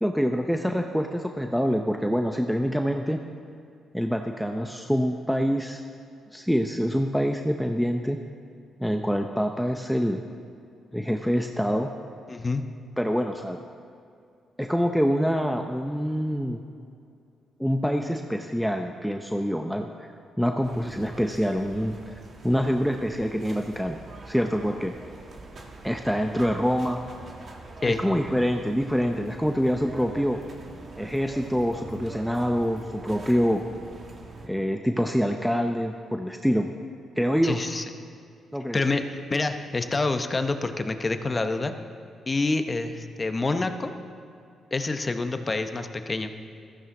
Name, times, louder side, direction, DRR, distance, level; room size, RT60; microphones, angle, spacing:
voice 1, 0.0-3.2 3.9-5.8 6.3-8.2 8.8-10.2 10.9-11.9 13.0-13.6 14.6-16.6 17.6-20.1 20.4-22.1 22.4-24.0 24.3-24.9 25.8-27.0 27.9-30.4 31.0-33.6 34.4-36.7 37.2-37.6 38.5-38.8, equal, ahead, 4 dB, 0.7 m, -25 dB
voice 2, 12.3-12.6 27.8-28.0 37.4-37.8 38.7-41.7 42.3-43.9 44.7-46.3, left 3 dB, 30° left, 7 dB, 0.9 m, -27 dB
sound 1, 20.6-34.5, right 2 dB, 50° right, 1.9 m, -44 dB
15.0 x 14.0 x 3.8 m, 2.4 s
cardioid pair, 80°, 0 cm